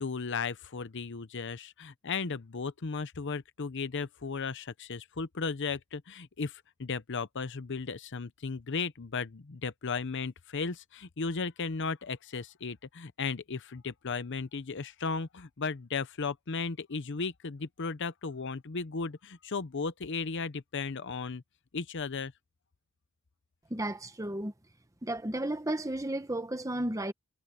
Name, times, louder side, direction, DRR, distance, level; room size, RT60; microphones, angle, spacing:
voice 1, 0.0-21.4 21.7-22.3, left 4 dB, 55° left, 0.7 m, -35 dB
voice 2, 23.7-24.5 25.0-27.1, right 1 dB, 15° right, 1.1 m, -33 dB
head